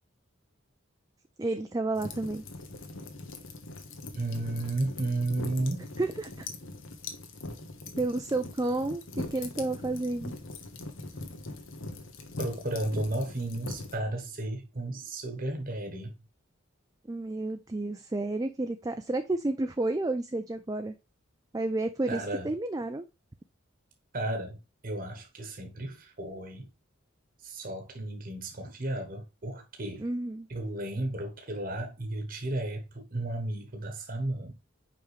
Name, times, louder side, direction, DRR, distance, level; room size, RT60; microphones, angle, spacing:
voice 1, 1.4-2.4 6.0-6.5 8.0-10.3 17.1-20.9 21.5-23.0 30.0-30.5, right 2 dB, 20° right, 0.4 m, -31 dB
sound 1, 1.9-13.9, left 2 dB, 75° left, 1.3 m, -41 dB
voice 2, 4.1-5.9 12.4-16.2 22.1-22.5 24.1-26.7 27.4-30.1 30.5-34.6, right 2 dB, 45° right, 1.2 m, -33 dB
5.6 x 5.2 x 3.3 m
head